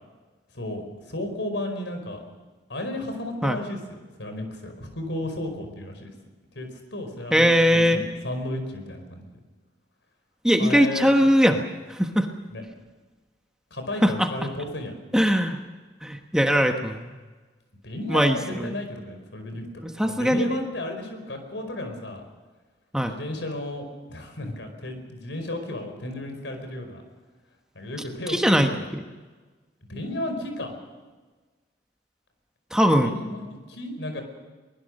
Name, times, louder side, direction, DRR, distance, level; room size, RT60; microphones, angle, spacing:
voice 1, 0.5-2.2 2.7-6.1 6.5-9.3 10.6-11.1 12.5-12.6 13.7-14.9 17.8-19.7 20.0-22.2 23.0-27.0 27.7-28.9 29.9-30.8 33.0-34.2, left 1 dB, 80° left, 5 dB, 5.0 m, -33 dB
voice 2, 7.3-8.0 10.4-12.3 14.0-14.3 15.1-15.6 16.0-17.1 18.1-18.7 20.0-20.6 22.9-23.1 28.3-29.0 32.7-33.2, equal, 5° right, 4 dB, 1.2 m, -21 dB
23.0 x 20.0 x 6.6 m, 1.3 s
head